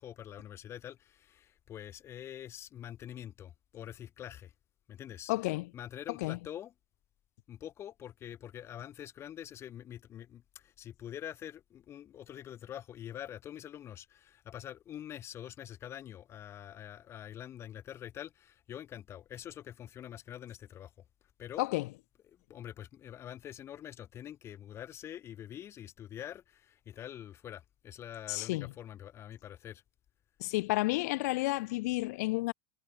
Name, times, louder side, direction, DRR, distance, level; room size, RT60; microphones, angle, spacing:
voice 1, 0.0-4.5 4.9-5.3 5.7-6.7 7.5-20.9 21.4-21.7 22.3-29.8, left 10 dB, 30° left, 7.9 m, -45 dB
voice 2, 5.3-5.7 6.2-6.4 21.6-21.9 28.3-28.7 30.4-32.5, left 21 dB, 70° left, 2.7 m, -31 dB
supercardioid pair, 155°, 9 cm